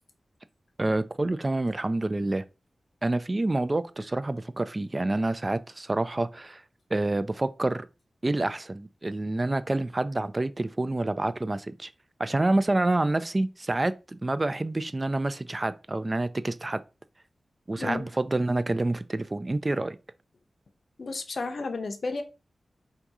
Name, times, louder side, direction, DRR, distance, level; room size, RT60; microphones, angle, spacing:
voice 1, 0.8-2.4 3.0-6.6 6.9-7.9 8.2-11.9 12.2-16.8 17.7-20.0, right 2 dB, 30° right, 0.4 m, -27 dB
voice 2, 17.8-18.1 21.0-22.2, left 3 dB, 65° left, 0.7 m, -32 dB
3.6 x 2.8 x 4.7 m
wide cardioid pair, 65°, 0 cm